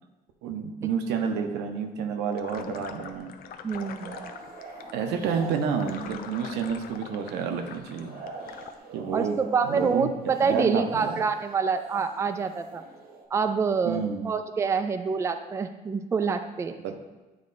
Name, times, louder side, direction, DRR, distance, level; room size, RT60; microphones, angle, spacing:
voice 1, 0.4-3.3 4.9-8.1 8.9-10.1 10.4-11.2 13.8-14.3 16.8-17.0, right 6 dB, 85° right, 5 dB, 0.7 m, -29 dB
sound 1, 2.3-8.7, left 8 dB, 60° left, 0.5 m, -44 dB
voice 2, 3.6-4.3 9.1-12.8 13.3-16.7, right 5 dB, 15° right, 8 dB, 0.3 m, -27 dB
sound 2, 3.8-13.3, right 4 dB, 60° right, 0.9 m, -46 dB
8.7 x 3.2 x 3.9 m, 1.1 s
cardioid pair, 110°, 17 cm